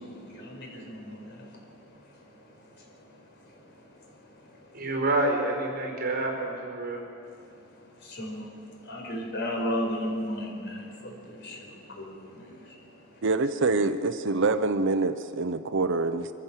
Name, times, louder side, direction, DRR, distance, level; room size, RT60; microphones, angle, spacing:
voice 1, 0.0-4.9 7.2-13.2, equal, 55° left, 0 dB, 5.1 m, -37 dB
voice 2, 4.7-7.1, right 2 dB, 45° right, 1 dB, 4.7 m, -28 dB
voice 3, 13.2-16.3, right 3 dB, 60° right, 10 dB, 0.7 m, -25 dB
24.5 x 15.5 x 7.4 m, 2.5 s
head